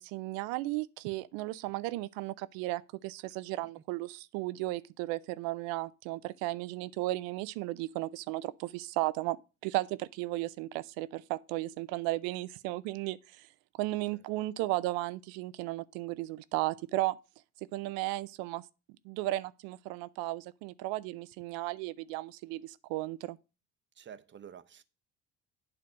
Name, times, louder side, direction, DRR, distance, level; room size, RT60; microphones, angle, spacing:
voice 1, 0.0-9.4 9.6-13.5 13.8-17.2 17.7-18.6 19.0-23.4, right 18 dB, 80° right, 0.5 m, -35 dB
voice 2, 23.9-24.8, right 8 dB, 35° right, 0.7 m, -50 dB
8.7 x 3.4 x 6.1 m
supercardioid pair, 80°, 34 cm